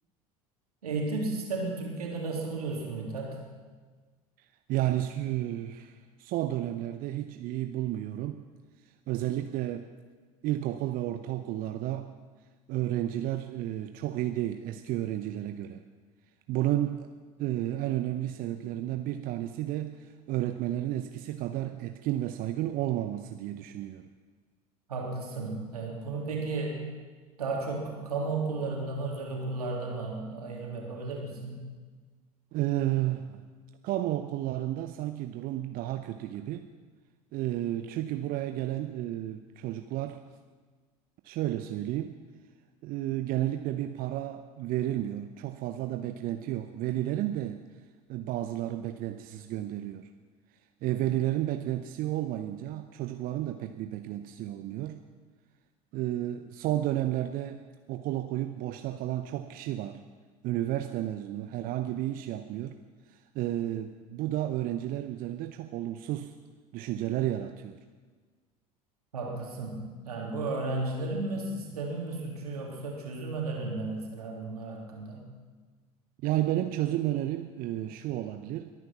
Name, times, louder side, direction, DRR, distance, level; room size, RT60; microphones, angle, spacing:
voice 1, 0.8-3.4 24.9-26.8 27.4-31.7 69.1-75.3, right 3 dB, 80° right, -1 dB, 3.3 m, -34 dB
voice 2, 4.4-8.5 8.8-9.9 10.4-12.1 12.7-15.8 16.5-17.1 17.4-24.1 32.5-33.4 33.8-36.7 37.3-40.2 41.2-42.2 42.8-47.6 48.1-50.1 50.8-55.0 55.9-60.0 60.4-62.8 63.1-66.4 66.7-67.8 76.2-78.7, right 13 dB, 50° right, 8 dB, 0.8 m, -32 dB
22.0 x 9.7 x 5.9 m, 1.5 s
figure-of-eight pair, 70°, 19 cm